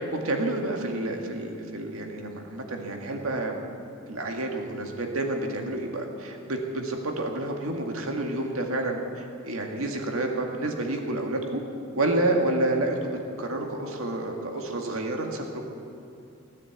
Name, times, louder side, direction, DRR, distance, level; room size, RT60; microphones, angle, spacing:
voice 1, 0.1-3.5 4.1-11.6 11.9-13.1 13.4-15.7, right 2 dB, 85° right, 2 dB, 2.0 m, -29 dB
17.5 x 9.8 x 8.4 m, 2.6 s
head